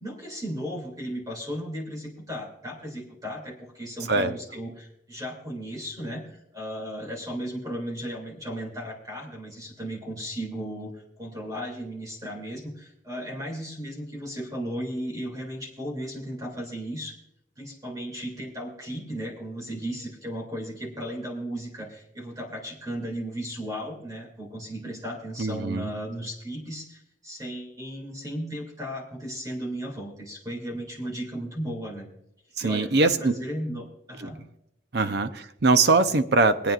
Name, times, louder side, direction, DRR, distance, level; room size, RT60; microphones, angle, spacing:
voice 1, 0.0-17.2 17.6-32.1 32.6-34.4 35.0-35.2, equal, 20° right, 0 dB, 2.6 m, -35 dB
voice 2, 25.4-25.9 32.6-33.3 34.2-34.3 34.9-36.7, right 3 dB, 60° right, 10 dB, 0.7 m, -22 dB
24.0 x 9.1 x 2.5 m, 0.81 s
head